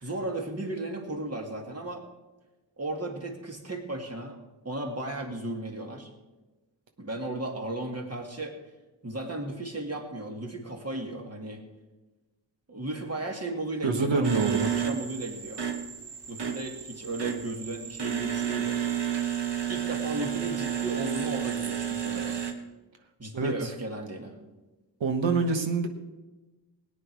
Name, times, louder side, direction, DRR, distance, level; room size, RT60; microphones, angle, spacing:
voice 1, 0.0-2.0 2.8-4.4 4.6-6.1 7.0-8.5 9.0-11.6 12.7-15.6 16.3-18.9 19.7-22.4 23.2-24.3, right 2 dB, 35° right, 2 dB, 2.2 m, -35 dB
voice 2, 13.8-14.7 23.3-23.7 25.0-25.9, right 4 dB, 85° right, 5 dB, 1.4 m, -26 dB
sound 1, 14.2-22.5, right 9 dB, 65° right, 1.4 m, -31 dB
18.5 x 9.2 x 4.7 m, 1.1 s
wide cardioid pair, 85°, 44 cm